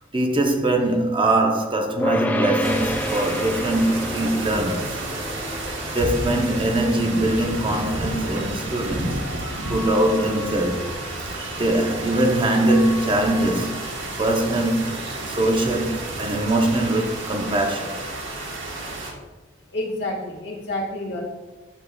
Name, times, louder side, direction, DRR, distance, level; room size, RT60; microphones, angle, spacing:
voice 1, 0.1-5.2 5.9-9.2 9.7-10.9 11.3-18.0, right 1 dB, 25° right, 0.6 m, -22 dB
sound 1, 2.0-13.3, equal, 10° left, 0.3 m, -31 dB
sound 2, 2.6-19.1, right 1 dB, 80° right, 1.3 m, -31 dB
voice 2, 19.7-21.3, left 1 dB, 60° left, 1.5 m, -29 dB
9.5 x 6.6 x 2.3 m
head